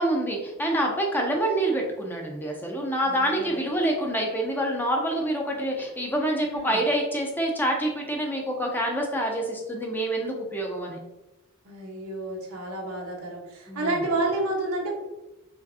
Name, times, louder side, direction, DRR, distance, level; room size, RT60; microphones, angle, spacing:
voice 1, 0.0-11.0 13.7-14.0, right 1 dB, 10° left, 0 dB, 0.6 m, -27 dB
voice 2, 3.0-3.6 6.5-6.8 11.6-14.9, right 2 dB, 90° right, -2 dB, 1.3 m, -30 dB
5.0 x 3.1 x 2.7 m, 0.99 s
head